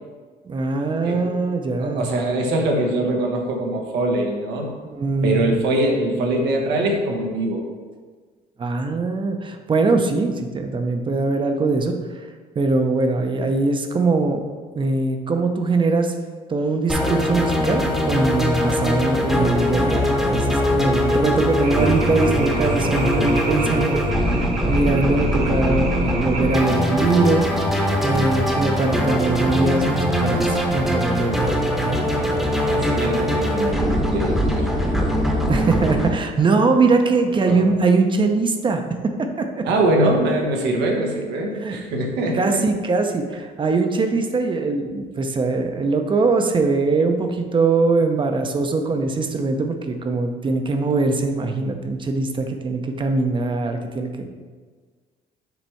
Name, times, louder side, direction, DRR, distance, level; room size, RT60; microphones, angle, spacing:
voice 1, 0.4-2.1 4.9-5.5 8.6-11.9 12.6-14.4 14.8-16.1 16.5-27.5 28.0-31.5 35.5-39.7 41.6-41.8 42.3-54.3, right 3 dB, 30° right, 5 dB, 0.6 m, -21 dB
voice 2, 1.0-1.4 1.8-4.8 5.2-7.7 22.5-22.7 32.7-35.0 35.6-35.7 37.5-37.8 39.6-42.6, right 1 dB, 90° right, 1 dB, 1.1 m, -23 dB
sound 1, 16.9-36.1, equal, ahead, 0.9 m, -21 dB
sound 2, 21.6-26.6, right 3 dB, 55° right, 1.4 m, -32 dB
7.0 x 3.3 x 4.5 m, 1.5 s
cardioid pair, 110°, 17 cm